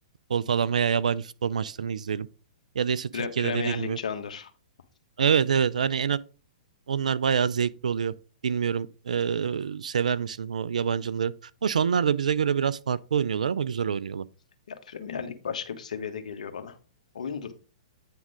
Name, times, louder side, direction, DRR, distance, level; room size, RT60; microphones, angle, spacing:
voice 1, 0.3-2.3 2.7-4.0 5.2-6.2 6.9-8.1 8.4-11.3 11.6-14.2, right 7 dB, 80° right, 0.5 m, -26 dB
voice 2, 3.1-4.5 14.7-16.7 17.1-17.5, left 6 dB, 75° left, 1.5 m, -34 dB
9.1 x 3.8 x 4.9 m
hypercardioid pair, 120°, 4 cm